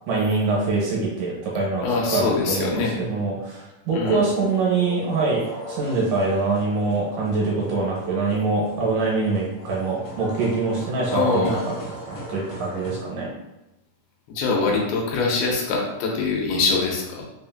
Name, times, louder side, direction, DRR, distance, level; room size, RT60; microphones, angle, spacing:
voice 1, 0.1-11.7 12.1-13.3, right 3 dB, 75° right, -4 dB, 2.2 m, -24 dB
voice 2, 1.8-2.9 3.9-4.2 11.1-11.6 14.3-17.3, left 4 dB, 90° left, -1 dB, 2.5 m, -23 dB
sound 1, 4.2-13.0, equal, 70° left, 1.2 m, -37 dB
5.5 x 2.5 x 2.3 m, 0.96 s
omnidirectional pair, 4.2 m